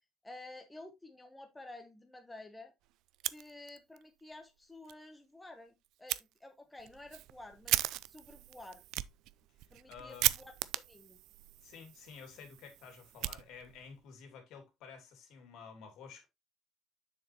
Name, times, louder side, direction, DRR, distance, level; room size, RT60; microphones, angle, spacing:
voice 1, 0.2-2.7 3.3-8.8 9.7-10.4 10.9-11.2, left 2 dB, 10° left, 1.1 m, -51 dB
Fire, 3.1-4.0 4.3-4.4 4.9-5.0 6.1-6.2 6.8-13.9, right 15 dB, 70° right, 0.4 m, -37 dB
voice 2, 9.8-10.3 11.6-16.3, left 6 dB, 70° left, 2.9 m, -51 dB
7.5 x 6.4 x 3.0 m
cardioid pair, 150°, 0 cm